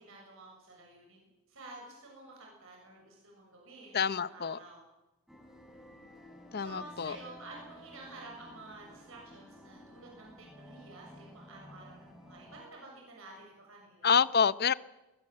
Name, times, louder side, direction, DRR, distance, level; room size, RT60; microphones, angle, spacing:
voice 1, 0.0-4.9 6.6-14.2, right 2 dB, 65° right, 6.9 m, -51 dB
voice 2, 3.9-4.6 6.5-7.2 14.0-14.7, left 6 dB, 45° left, 0.7 m, -27 dB
sound 1, 5.3-12.6, equal, ahead, 4.1 m, -53 dB
22.0 x 20.5 x 7.8 m
head